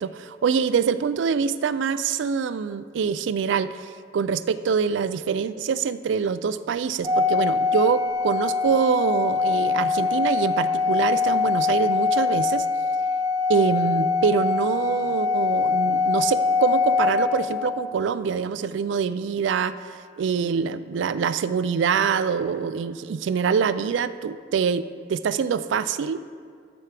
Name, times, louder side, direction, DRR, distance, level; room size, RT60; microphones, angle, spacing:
voice 1, 0.0-12.7 13.5-19.7 20.2-26.2, right 6 dB, 70° right, 14 dB, 0.3 m, -25 dB
Organ, 7.0-17.9, left 4 dB, 20° right, 0.6 m, -23 dB
12.0 x 7.0 x 3.3 m, 2.1 s
head